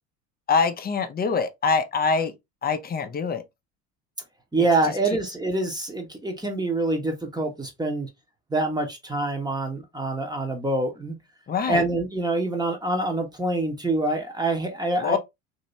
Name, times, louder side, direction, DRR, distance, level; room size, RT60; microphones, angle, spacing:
voice 1, 0.5-2.3 2.6-3.4 11.5-11.8 15.0-15.2, left 5 dB, 20° left, 0.6 m, -24 dB
voice 2, 4.5-8.1 8.5-11.2 11.7-15.2, right 2 dB, 10° right, 0.9 m, -26 dB
2.9 x 2.7 x 3.0 m
hypercardioid pair, 85°, 43 cm